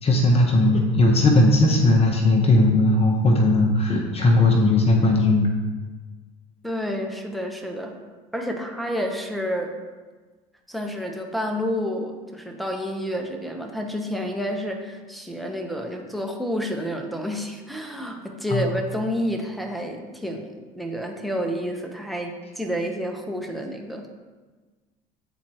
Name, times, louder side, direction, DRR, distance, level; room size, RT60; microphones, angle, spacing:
voice 1, 0.0-5.5 18.5-18.7, left 2 dB, 35° left, 2 dB, 0.8 m, -18 dB
voice 2, 6.6-7.9 8.3-9.8 10.7-24.1, equal, ahead, 1 dB, 0.8 m, -29 dB
7.7 x 4.3 x 2.9 m, 1.4 s
supercardioid pair, 85°, 18 cm